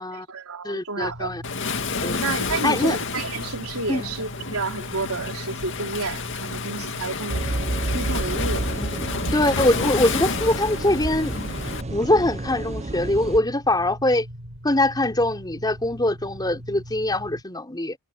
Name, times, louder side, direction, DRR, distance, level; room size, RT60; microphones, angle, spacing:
voice 1, 0.0-1.3 2.2-7.5 7.9-8.7, right 3 dB, 85° right, 3.7 m, -31 dB
voice 2, 0.6-1.4 2.0-2.2 2.6-3.0 3.9-4.1 8.8-8.9 9.3-11.3 11.9-14.3 14.6-18.0, left 1 dB, 20° left, 3.7 m, -23 dB
sound 1, 1.0-17.4, equal, 60° right, 6.5 m, -40 dB
Waves surf, 1.4-11.8, left 4 dB, 60° left, 2.3 m, -30 dB
sound 2, 7.3-13.4, right 2 dB, 30° right, 0.8 m, -30 dB
head